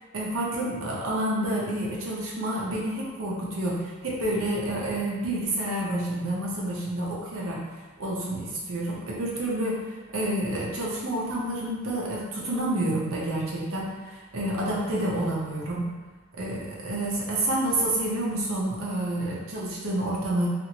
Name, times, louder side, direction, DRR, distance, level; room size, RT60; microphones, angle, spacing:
voice 1, 0.1-7.6 8.0-9.8 10.1-15.9 16.4-20.5, right 1 dB, 75° right, -5 dB, 0.7 m, -29 dB
3.0 x 2.5 x 2.9 m, 1.3 s
head